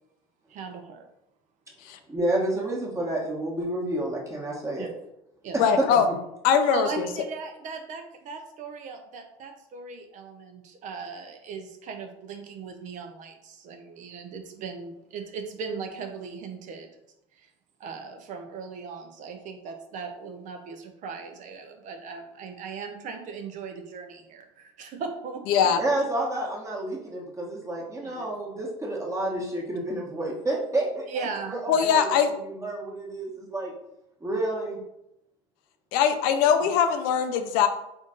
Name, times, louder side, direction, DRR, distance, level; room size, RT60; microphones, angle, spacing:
voice 1, 0.5-1.1 4.8-4.9 5.4-5.6 6.7-16.9 17.3-17.5 17.8-25.7 28.0-28.3 31.1-31.7, right 5 dB, 55° right, 5 dB, 0.6 m, -38 dB
voice 2, 2.1-4.9 5.5-5.8 25.7-32.2 32.4-33.7 34.2-34.8, right 1 dB, 20° right, -2 dB, 1.3 m, -29 dB
voice 3, 5.6-6.1 6.4-7.1 25.5-25.8 31.7-32.3 35.9-37.7, left 7 dB, 70° left, 8 dB, 0.5 m, -21 dB
3.7 x 2.6 x 3.8 m, 0.83 s
hypercardioid pair, 80°, 16 cm